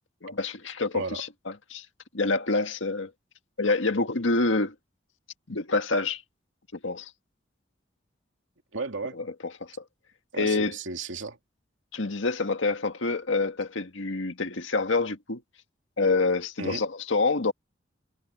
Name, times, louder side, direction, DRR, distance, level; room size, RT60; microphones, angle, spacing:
voice 1, 0.2-1.9 2.1-3.1 3.6-4.7 5.5-6.2 6.8-7.1 9.6-9.8 10.3-10.8 11.9-15.4 16.0-17.5, left 3 dB, 90° left, 1.8 m, -27 dB
voice 2, 8.7-9.2 10.3-11.4 16.6-16.8, right 3 dB, 90° right, 2.6 m, -34 dB
head